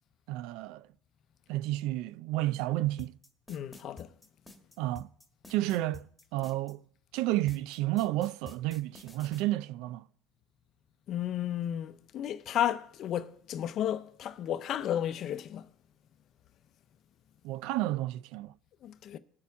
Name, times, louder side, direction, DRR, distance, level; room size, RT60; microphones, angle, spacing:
voice 1, 0.3-0.9 1.5-3.2 4.8-5.1 5.5-6.8 7.1-10.1 17.4-18.5, right 16 dB, 75° right, 0.4 m, -31 dB
sound 1, 3.0-6.7 7.5-9.4, left 3 dB, 5° left, 1.5 m, -50 dB
voice 2, 3.5-4.1 11.1-15.7 18.8-19.2, left 11 dB, 45° left, 0.6 m, -33 dB
20.5 x 6.9 x 3.6 m
cardioid pair, 140°, 0 cm